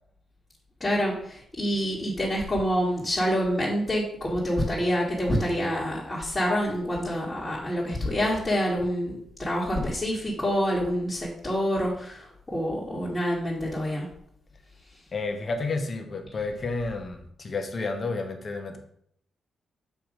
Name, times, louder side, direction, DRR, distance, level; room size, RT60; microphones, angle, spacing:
voice 1, 0.8-14.1, equal, 25° left, -6 dB, 1.8 m, -27 dB
voice 2, 15.1-18.8, left 3 dB, 45° left, 5 dB, 1.1 m, -31 dB
6.9 x 2.9 x 5.0 m, 0.68 s
cardioid pair, 65°, 0 cm